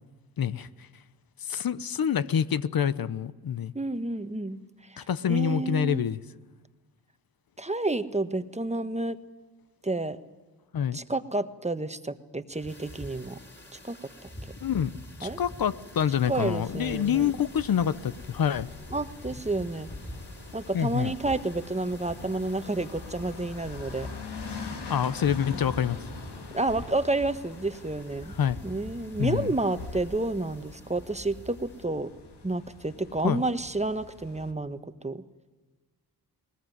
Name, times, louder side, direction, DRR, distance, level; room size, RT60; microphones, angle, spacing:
voice 1, 0.4-0.9 1.4-3.7 5.0-6.2 10.7-11.0 14.6-14.9 15.2-18.7 20.7-21.1 24.9-26.0 28.3-28.6 29.2-29.5 33.2-33.4, left 8 dB, 60° left, 15 dB, 0.9 m, -27 dB
voice 2, 3.7-6.0 7.6-9.2 9.8-10.2 10.9-13.4 13.7-14.3 15.2-15.4 16.3-17.3 18.9-19.9 20.5-24.1 25.4-25.7 26.5-28.3 28.6-32.1 32.4-35.2, right 2 dB, 15° right, 11 dB, 1.3 m, -30 dB
sound 1, 12.5-31.8, left 1 dB, 25° left, 4.4 m, -46 dB
sound 2, 16.1-34.5, left 4 dB, 85° left, 2.9 m, -44 dB
21.0 x 20.0 x 9.3 m, 1.3 s
cardioid pair, 60°, 40 cm